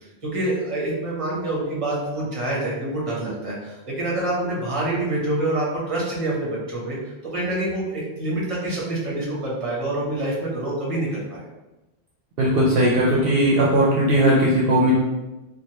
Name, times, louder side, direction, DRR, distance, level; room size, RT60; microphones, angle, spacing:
voice 1, 0.2-7.0 7.2-11.4, right 1 dB, 35° right, -5 dB, 0.9 m, -26 dB
voice 2, 12.4-14.9, right 1 dB, 65° right, -5 dB, 0.7 m, -18 dB
3.2 x 2.3 x 2.7 m, 1.1 s
omnidirectional pair, 1.1 m